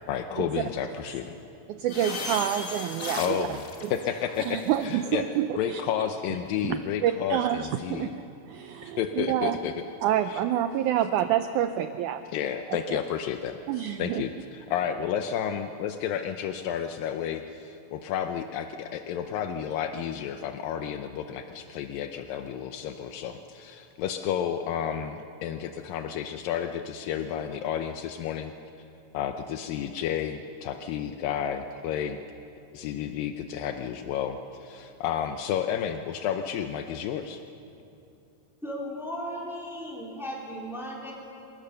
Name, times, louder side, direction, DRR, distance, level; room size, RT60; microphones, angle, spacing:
voice 1, 0.1-1.3 3.2-3.6 3.9-5.2 5.6-8.1 9.0-9.8 10.3-10.4 12.3-28.5 29.1-32.2 32.7-37.4, left 9 dB, 80° left, 7 dB, 2.4 m, -31 dB
voice 2, 1.7-3.4 3.8-3.9 4.5-5.8 6.6-9.6 10.0-12.2 12.7-13.0 13.7-14.2, right 11 dB, 80° right, 9 dB, 1.8 m, -28 dB
sound 1, 1.9-4.9, left 3 dB, 50° left, 0.9 m, -37 dB
voice 3, 38.6-41.1, equal, ahead, -4 dB, 3.4 m, -36 dB
27.5 x 17.0 x 6.8 m, 2.8 s
omnidirectional pair, 4.1 m